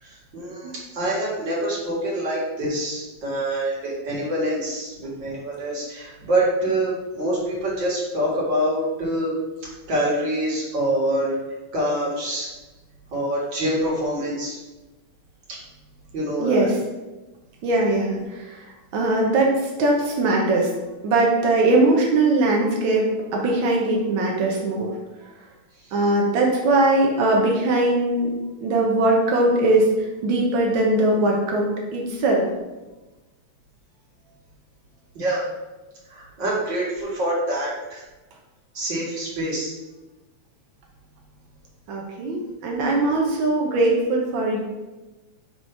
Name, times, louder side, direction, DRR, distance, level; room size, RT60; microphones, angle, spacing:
voice 1, 0.0-11.4 11.7-12.5 13.1-14.6 15.5-15.6 16.1-16.7 35.1-35.4 36.1-38.0 38.7-39.7, right 1 dB, 40° right, -4 dB, 2.2 m, -25 dB
voice 2, 16.4-16.7 17.6-20.7 21.0-24.9 25.9-28.3 28.6-32.4 41.9-44.6, right 2 dB, 75° right, -1 dB, 1.1 m, -21 dB
4.9 x 4.7 x 5.5 m, 1.1 s
omnidirectional pair, 3.4 m